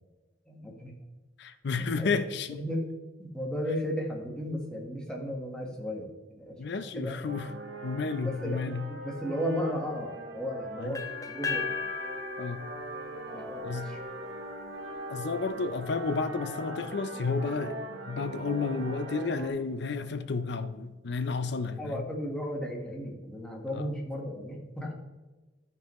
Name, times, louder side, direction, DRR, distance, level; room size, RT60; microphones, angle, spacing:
voice 1, 0.5-0.9 1.8-2.1 2.5-2.9 3.2-6.6 7.0-7.2 8.2-11.7 13.3-14.0 21.8-24.9, equal, 5° left, -1 dB, 1.4 m, -35 dB
voice 2, 1.4-2.6 6.6-7.5 7.8-8.8 10.8-11.0 12.4-12.6 13.6-13.9 15.1-17.8 18.1-22.1 23.7-23.9, left 4 dB, 65° left, 11 dB, 0.5 m, -31 dB
sound 1, 7.2-19.5, right 1 dB, 80° right, 1.0 m, -41 dB
sound 2, 10.9-14.8, left 6 dB, 20° left, 0.6 m, -37 dB
12.5 x 5.4 x 3.1 m, 1.2 s
head